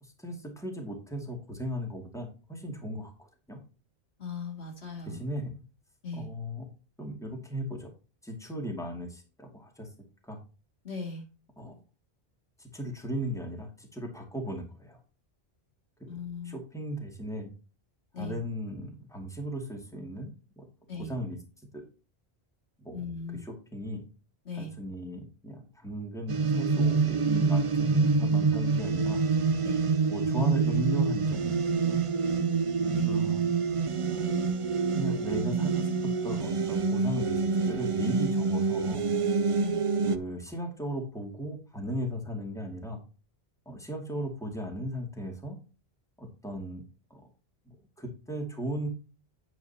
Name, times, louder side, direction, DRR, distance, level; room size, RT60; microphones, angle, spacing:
voice 1, 0.0-3.6 5.0-5.6 6.1-6.7 7.0-7.9 8.2-9.9 10.2-10.4 11.6-11.7 12.6-15.0 16.0-16.1 16.4-17.5 18.2-20.7 21.0-21.4 21.7-21.8 22.8-23.0 23.4-24.0 24.5-29.2 30.1-31.6 31.9-32.0 32.8-33.4 34.1-34.3 34.9-35.9 36.2-39.1 40.0-43.0 43.7-45.6 46.2-47.3 47.7-48.9, equal, 5° left, 1 dB, 2.4 m, -37 dB
voice 2, 4.2-5.2 6.0-6.3 10.8-11.2 16.1-16.6 18.1-18.4 20.9-21.1 22.9-23.4 24.4-24.7 29.6-29.8 32.9-33.2 39.6-39.8, left 4 dB, 80° left, 2 dB, 2.7 m, -38 dB
sound 1, 26.3-40.2, right 4 dB, 40° right, 0.5 m, -26 dB
9.2 x 9.1 x 2.9 m, 0.33 s
omnidirectional pair, 1.1 m